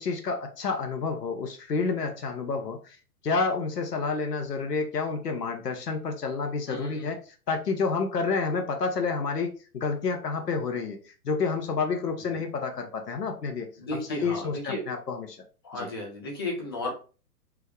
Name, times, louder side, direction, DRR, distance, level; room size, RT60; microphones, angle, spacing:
voice 1, 0.0-3.0 3.2-15.4 15.7-15.9, left 4 dB, 85° left, 4 dB, 0.9 m, -29 dB
voice 2, 6.7-7.1 12.3-12.4 13.8-14.8 15.6-16.9, left 2 dB, 20° left, -1 dB, 0.4 m, -34 dB
3.5 x 2.1 x 3.5 m, 0.36 s
figure-of-eight pair, 120°, 46 cm